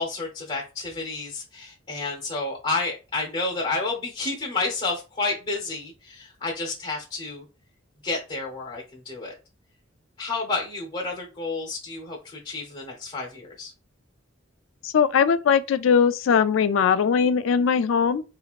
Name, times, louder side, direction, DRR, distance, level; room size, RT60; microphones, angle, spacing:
voice 1, 0.0-7.4 8.0-9.3 10.2-13.7, left 3 dB, 30° left, 0.8 m, -30 dB
voice 2, 14.8-18.2, left 6 dB, 80° left, 0.3 m, -20 dB
3.0 x 2.8 x 2.4 m
head